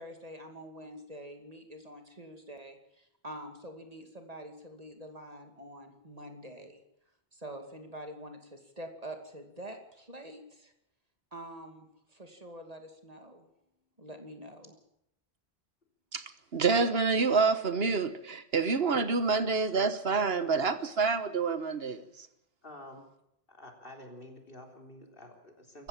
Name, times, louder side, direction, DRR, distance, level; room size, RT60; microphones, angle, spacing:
voice 1, 0.0-6.8 7.3-10.7 11.3-13.5 14.0-14.8, right 1 dB, 35° right, 2.6 m, -46 dB
voice 2, 16.5-22.3, right 4 dB, 70° right, 1.5 m, -27 dB
voice 3, 22.6-23.1 23.5-25.9, left 1 dB, 60° left, 3.9 m, -49 dB
24.5 x 14.5 x 7.4 m
omnidirectional pair, 1.1 m